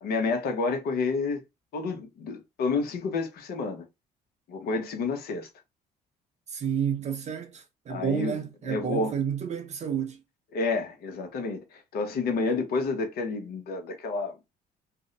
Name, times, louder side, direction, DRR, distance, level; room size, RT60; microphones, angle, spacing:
voice 1, 0.0-1.4 1.7-3.8 4.5-5.5 7.9-8.3 8.6-9.1 10.5-14.4, left 4 dB, 65° left, 0.9 m, -29 dB
voice 2, 6.5-10.2, right 8 dB, 40° right, 0.6 m, -30 dB
2.6 x 2.1 x 3.8 m
cardioid pair, 110°, 17 cm